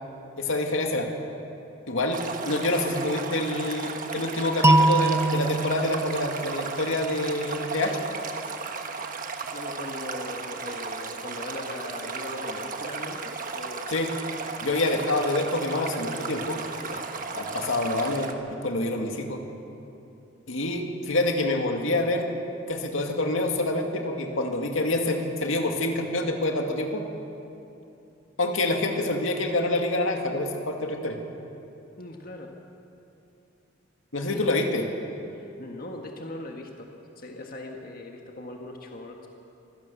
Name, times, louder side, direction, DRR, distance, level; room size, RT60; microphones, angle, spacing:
voice 1, 0.4-1.1 1.9-8.0 13.9-14.1 14.6-16.6 16.9-17.0 17.4-19.4 20.5-22.3 22.7-27.0 28.4-31.2 34.1-34.9, left 2 dB, 80° left, 3 dB, 2.2 m, -27 dB
Stream, 2.1-18.3, right 4 dB, 40° right, 1.3 m, -35 dB
sound 1, 4.6-7.5, right 2 dB, 15° right, 0.7 m, -24 dB
voice 2, 9.5-14.1 14.9-15.1 32.0-32.5 34.2-34.9 35.3-36.9 37.2-39.3, left 2 dB, 45° left, 1 dB, 1.6 m, -40 dB
24.5 x 16.5 x 7.0 m, 2.8 s
head